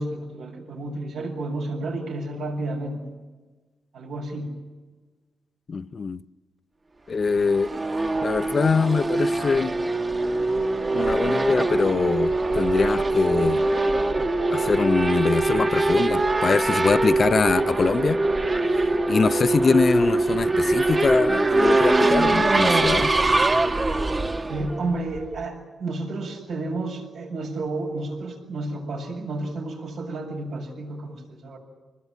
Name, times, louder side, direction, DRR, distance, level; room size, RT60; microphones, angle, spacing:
voice 1, 0.0-3.0 3.9-4.5 24.5-31.6, right 2 dB, 90° right, 7.4 m, -31 dB
voice 2, 5.7-6.2 7.1-7.7 8.2-9.8 10.9-13.6 14.5-18.2 18.7-18.8 19.1-23.1, left 5 dB, 40° left, 0.7 m, -23 dB
Race car auto racing / Accelerating revving vroom, 7.2-25.4, right 2 dB, 25° right, 1.3 m, -23 dB
26.0 x 21.0 x 9.1 m
cardioid pair, 115°, 0 cm